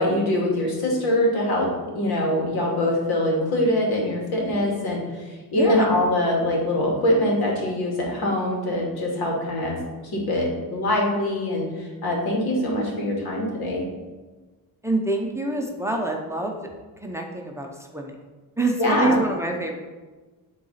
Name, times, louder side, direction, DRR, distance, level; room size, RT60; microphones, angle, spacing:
voice 1, 0.0-1.7 1.9-9.8 10.1-13.9 18.8-19.2, left 1 dB, 85° left, -2 dB, 2.6 m, -23 dB
voice 2, 5.5-5.9 14.8-16.6 17.0-17.7 17.9-18.1 18.6-19.8, right 2 dB, 10° right, 1 dB, 0.7 m, -26 dB
9.4 x 3.9 x 5.7 m, 1.3 s
cardioid pair, 155°, 36 cm